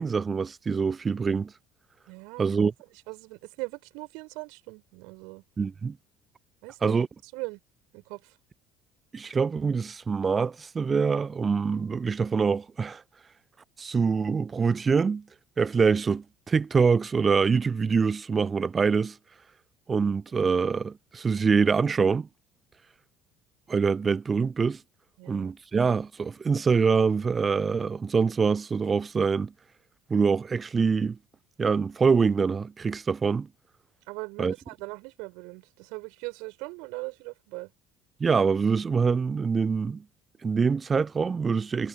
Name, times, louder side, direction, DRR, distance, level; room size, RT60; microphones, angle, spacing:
voice 1, 0.0-1.5 2.4-2.7 5.6-6.0 6.8-7.1 9.1-13.0 13.8-15.2 15.6-19.2 19.9-22.3 23.7-24.8 25.3-29.5 30.1-31.2 31.6-33.5 34.4-34.5 38.2-40.0 40.4-41.9, right 5 dB, 25° right, 0.4 m, -25 dB
voice 2, 2.1-2.5 3.1-5.4 6.6-7.0 7.3-7.6 7.9-8.4 20.0-20.4 25.2-25.5 34.1-37.7, right 29 dB, 60° right, 5.8 m, -40 dB
figure-of-eight pair, 60°, 0 cm